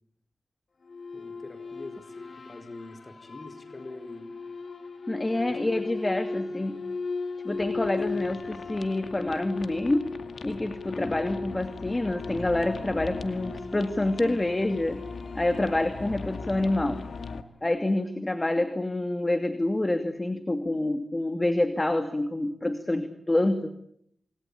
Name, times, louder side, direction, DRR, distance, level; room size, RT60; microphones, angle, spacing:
sound 1, 0.8-17.4, left 4 dB, 65° left, 3.1 m, -38 dB
voice 1, 1.1-4.3 5.5-5.6 6.0-6.7 7.9-8.3, left 2 dB, 45° left, 6 dB, 4.6 m, -45 dB
voice 2, 5.1-6.8 7.4-10.1 10.4-15.0 15.3-17.0 17.6-23.7, left 1 dB, 25° left, 8 dB, 2.6 m, -27 dB
sound 2, 7.5-17.4, left 4 dB, 80° left, 2.2 m, -40 dB
28.0 x 21.5 x 8.6 m, 0.73 s
cardioid pair, 50°, 0 cm